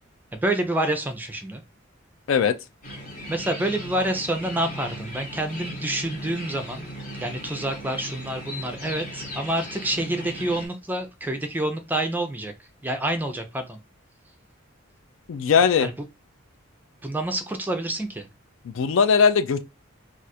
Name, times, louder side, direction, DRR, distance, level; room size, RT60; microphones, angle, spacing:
voice 1, 0.3-1.6 3.3-6.9 7.2-12.5 12.8-13.8 15.8-15.9 17.0-18.2, right 1 dB, 10° right, 0.4 m, -27 dB
sound 1, 2.8-10.7, equal, 40° left, 1.0 m, -37 dB
voice 2, 15.3-15.9 18.6-19.6, left 6 dB, 65° left, 0.4 m, -19 dB
2.4 x 2.4 x 4.1 m
head